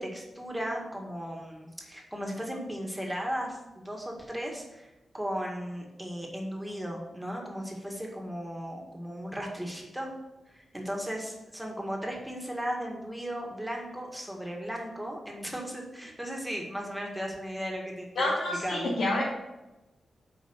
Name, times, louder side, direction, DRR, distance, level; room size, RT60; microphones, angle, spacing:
voice 1, 0.0-4.9 5.1-10.1 10.5-18.1 18.6-18.9, equal, 5° right, 0 dB, 1.9 m, -36 dB
voice 2, 18.2-19.2, left 1 dB, 80° left, -7 dB, 2.5 m, -28 dB
8.4 x 5.1 x 6.4 m, 1.0 s
wide cardioid pair, 130°, 0 cm